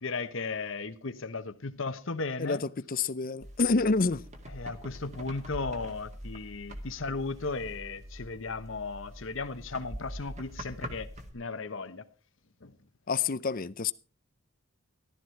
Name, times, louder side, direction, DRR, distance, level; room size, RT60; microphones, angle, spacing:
voice 1, 0.0-2.6 4.5-11.1 11.3-12.0 12.6-12.7, left 3 dB, 60° left, 1.0 m, -36 dB
voice 2, 2.4-4.2 13.1-13.9, left 4 dB, 40° left, 0.6 m, -28 dB
sound 1, 3.4-11.3, equal, 30° right, 2.1 m, -44 dB
14.5 x 13.0 x 4.5 m
head